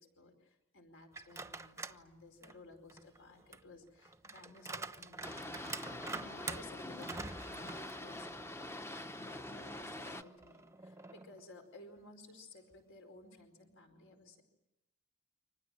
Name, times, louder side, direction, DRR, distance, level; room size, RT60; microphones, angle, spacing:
voice 1, 0.0-5.6 6.1-8.3 8.7-9.0 9.2-14.4, left 2 dB, 60° left, 5 dB, 4.8 m, -56 dB
sound 1, 1.1-2.0 2.4-8.5 8.9-9.0 10.0-11.5, right 3 dB, 15° right, 1.0 m, -46 dB
Boat Water vehicle, 5.2-10.2, left 1 dB, 10° left, 1.0 m, -45 dB
29.5 x 25.5 x 7.6 m, 0.89 s
head